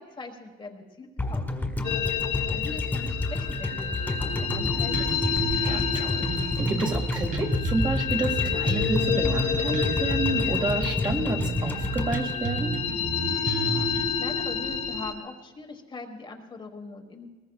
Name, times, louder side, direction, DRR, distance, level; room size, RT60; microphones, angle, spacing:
voice 1, 0.0-1.5 2.3-5.1 13.6-17.3, left 3 dB, 30° left, 3 dB, 1.4 m, -41 dB
sound 1, 1.2-13.4 13.7-13.8, left 2 dB, 10° left, 1.7 m, -30 dB
sound 2, 1.8-15.1, left 7 dB, 85° left, 1.3 m, -29 dB
Bass guitar, 4.5-14.1, right 5 dB, 55° right, 1.5 m, -33 dB
voice 2, 5.6-12.8, right 2 dB, 30° right, 3 dB, 2.0 m, -30 dB
22.0 x 20.0 x 2.3 m, 1.3 s
cardioid pair, 110°, 17 cm